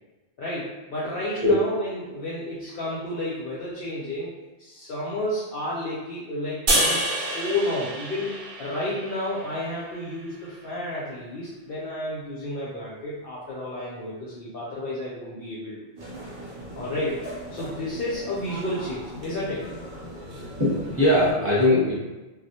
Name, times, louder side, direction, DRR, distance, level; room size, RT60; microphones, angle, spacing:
voice 1, 0.4-4.3 4.6-15.8 16.8-17.2 17.5-19.7, left 1 dB, 60° left, -7 dB, 0.6 m, -31 dB
sound 1, 6.7-10.0, right 1 dB, 55° right, 0.7 m, -27 dB
sound 2, 16.0-21.3, right 1 dB, 75° right, 1.0 m, -39 dB
voice 2, 20.1-21.9, left 1 dB, 15° right, -10 dB, 0.8 m, -21 dB
2.3 x 2.0 x 2.7 m, 1.1 s
omnidirectional pair, 1.2 m